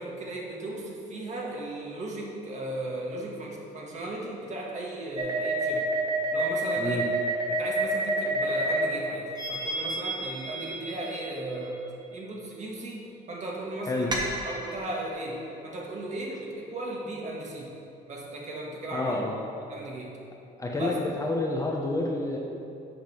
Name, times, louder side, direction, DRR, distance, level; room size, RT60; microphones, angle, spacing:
voice 1, 0.0-5.9 6.3-7.1 7.5-11.8 12.1-17.7 18.1-19.2 19.7-20.2 20.7-21.0, right 1 dB, 45° right, -2 dB, 1.7 m, -36 dB
sound 1, 5.2-8.9 9.3-11.5 14.1-15.1, right 2 dB, 25° right, 1.1 m, -29 dB
voice 2, 6.8-7.1 13.9-14.1 18.9-19.4 20.6-22.4, left 2 dB, 20° left, -1 dB, 0.9 m, -29 dB
7.8 x 5.2 x 5.8 m, 2.6 s
cardioid pair, 110°, 17 cm